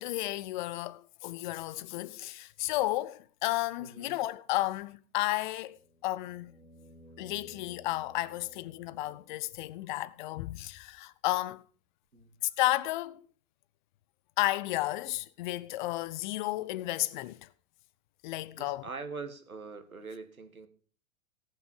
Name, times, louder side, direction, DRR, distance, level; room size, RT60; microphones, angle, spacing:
voice 1, 0.0-5.8 6.0-6.5 7.2-11.6 12.6-13.3 14.4-17.5 18.2-18.9, left 17 dB, 35° left, 0.6 m, -33 dB
voice 2, 3.8-4.2 12.1-12.4 18.6-20.7, right 4 dB, 85° right, 1.6 m, -43 dB
sound 1, 5.5-9.6 12.0-12.1, right 1 dB, 85° left, 2.5 m, -57 dB
18.0 x 6.1 x 5.4 m
figure-of-eight pair, 100°, 41 cm